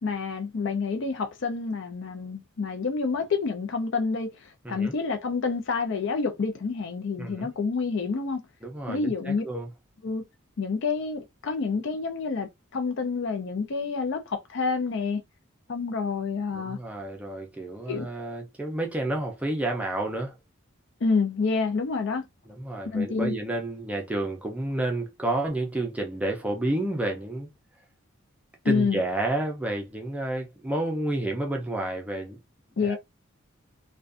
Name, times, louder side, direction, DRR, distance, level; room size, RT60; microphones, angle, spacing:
voice 1, 0.0-8.4 8.9-9.4 10.0-10.2 10.6-15.2 15.7-16.8 17.9-18.1 21.0-22.3 22.9-23.3 28.6-29.0 32.8-33.0, left 4 dB, 60° left, 0.5 m, -28 dB
voice 2, 7.2-7.5 8.6-9.7 16.5-20.3 22.5-27.5 28.6-32.4 32.8-33.0, right 1 dB, 5° right, 0.4 m, -30 dB
2.4 x 2.2 x 2.4 m
head